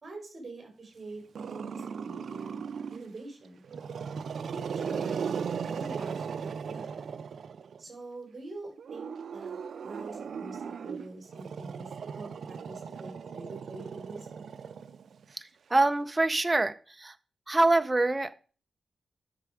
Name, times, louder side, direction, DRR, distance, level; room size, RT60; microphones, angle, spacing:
voice 1, 0.0-1.2 1.5-2.6 2.9-3.6 4.5-5.1 5.7-7.0 7.8-9.6 9.8-14.3, right 2 dB, 40° right, 2 dB, 4.8 m, -45 dB
Growling, 1.3-3.1 3.6-7.8 8.8-15.3, right 6 dB, 70° right, 0.5 m, -37 dB
voice 2, 15.7-17.1 17.5-18.3, right 2 dB, 20° right, 10 dB, 0.6 m, -25 dB
11.0 x 6.7 x 4.9 m, 0.38 s
wide cardioid pair, 120°, 0 cm